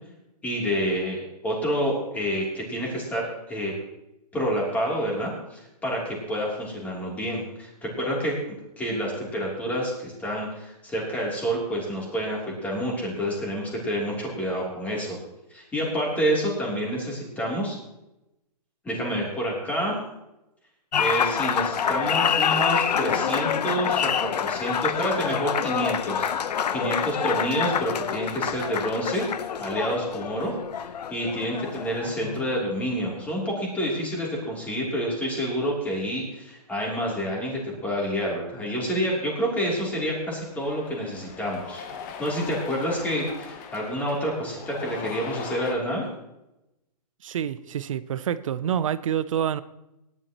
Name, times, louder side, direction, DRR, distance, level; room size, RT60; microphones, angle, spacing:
voice 1, 0.4-3.7 4.3-15.2 15.5-17.8 18.8-20.0 21.0-29.3 29.6-30.5 30.8-41.8 42.2-46.0, equal, 5° left, 3.2 m, -28 dB
Applause, 20.9-32.7, left 8 dB, 70° left, 0.9 m, -27 dB
Cheering, 39.7-45.8, left 7 dB, 25° left, 1.1 m, -40 dB
voice 2, 47.2-49.6, right 9 dB, 50° right, 0.7 m, -27 dB
18.0 x 11.0 x 3.0 m
hypercardioid pair, 160°, 21 cm